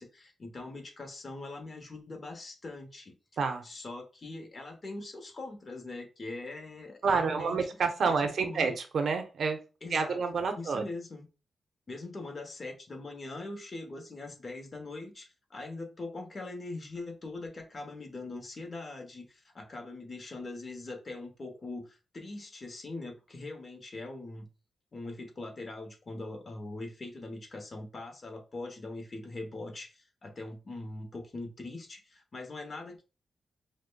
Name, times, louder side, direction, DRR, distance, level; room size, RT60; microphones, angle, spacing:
voice 1, 0.0-3.1 3.6-7.7 8.0-8.8 9.8-10.2 10.6-11.3 11.9-24.5 24.9-33.0, left 2 dB, 40° left, 0.9 m, -42 dB
voice 2, 7.0-9.6 9.9-10.8, right 5 dB, 65° right, 0.6 m, -29 dB
5.0 x 2.1 x 2.2 m
cardioid pair, 95°, 0 cm